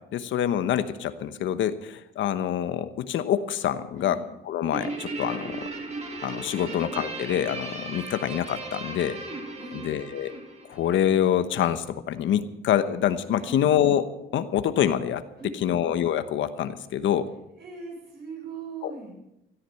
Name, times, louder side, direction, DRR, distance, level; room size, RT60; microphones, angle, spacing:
voice 1, 0.1-4.2 4.5-5.6 6.2-9.2 9.7-10.3 10.7-14.0 14.3-15.2 15.6-17.3 18.8-18.9, left 10 dB, 65° left, 11 dB, 1.1 m, -26 dB
Guitar, 4.7-11.4, right 3 dB, 30° right, 3.2 m, -37 dB
voice 2, 15.4-15.8 17.2-19.1, right 4 dB, 50° right, 0 dB, 7.5 m, -40 dB
17.0 x 13.0 x 5.8 m, 0.86 s
cardioid pair, 115°, 21 cm